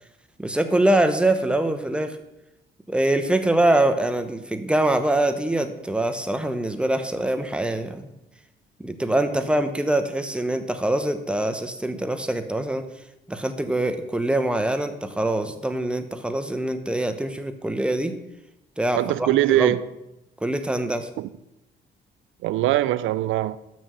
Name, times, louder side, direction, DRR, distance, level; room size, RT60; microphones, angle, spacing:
voice 1, 0.4-2.2 2.9-8.1 8.8-12.8 13.3-18.2 18.8-19.0 19.5-19.7 20.4-21.1, right 1 dB, 5° right, 0.9 m, -24 dB
voice 2, 18.9-19.8 21.2-21.3 22.4-23.6, right 15 dB, 85° right, 0.4 m, -22 dB
6.3 x 6.2 x 6.9 m
cardioid pair, 90°, 20 cm